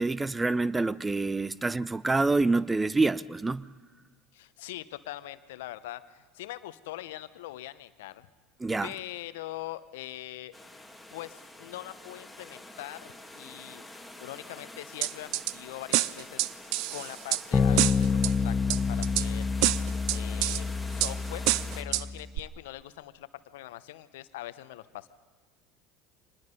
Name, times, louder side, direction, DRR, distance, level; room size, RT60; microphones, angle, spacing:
voice 1, 0.0-3.7 8.6-8.9, right 3 dB, 15° right, 0.7 m, -27 dB
voice 2, 4.3-8.3 8.8-10.5 11.1-13.8 14.2-16.5 16.9-19.5 20.1-21.5 21.8-25.1, left 15 dB, 75° left, 0.9 m, -42 dB
sound 1, 10.5-21.8, left 1 dB, ahead, 3.0 m, -47 dB
sound 2, 15.0-15.5 15.9-17.4 17.8-18.3 18.7-19.3 19.6-20.6 21.0-21.1 21.5-22.0 22.4-22.5, right 17 dB, 65° right, 0.6 m, -27 dB
sound 3, 17.5-22.3, left 5 dB, 30° left, 1.0 m, -28 dB
25.5 x 20.0 x 5.4 m
hypercardioid pair, 75°, 0 cm